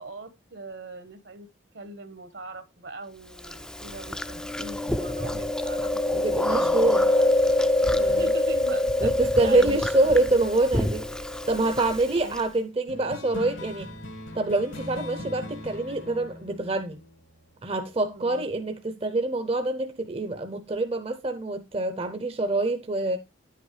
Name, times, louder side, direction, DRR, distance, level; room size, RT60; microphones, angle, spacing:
voice 1, 0.0-1.5 1.7-6.2 6.5-7.3 7.9-10.2 12.2-12.5 18.1-18.5, right 2 dB, 70° right, 1.4 m, -41 dB
Chewing mastication, 3.4-12.4, left 1 dB, 5° left, 0.4 m, -25 dB
voice 2, 6.1-7.0 8.0-8.3 9.0-11.0 11.5-13.9 14.3-17.0 17.6-23.2, right 2 dB, 30° right, 0.7 m, -25 dB
sound 1, 12.9-17.8, left 1 dB, 85° left, 1.9 m, -40 dB
10.0 x 8.2 x 3.2 m
head